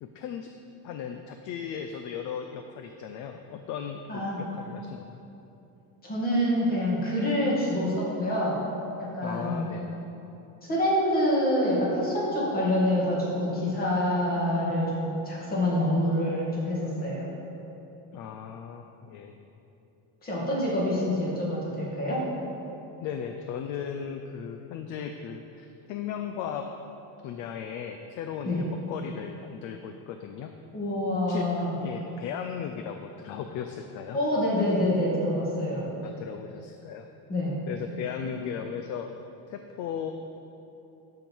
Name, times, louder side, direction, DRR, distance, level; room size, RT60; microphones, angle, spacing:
voice 1, 0.0-0.5 0.8-5.2 9.2-10.0 18.1-19.5 23.0-26.7 27.2-30.5 31.1-31.5 31.8-34.2 36.0-37.1 37.7-39.1 39.5-40.1, left 8 dB, 50° left, 6 dB, 0.5 m, -37 dB
voice 2, 4.1-4.4 6.0-8.6 9.0-9.7 10.6-17.3 20.2-22.3 28.4-28.6 30.7-31.7 34.1-35.9 37.3-37.6 38.2-38.4, left 1 dB, 20° left, -5 dB, 2.0 m, -26 dB
12.0 x 5.8 x 4.6 m, 2.9 s
cardioid pair, 180°, 40 cm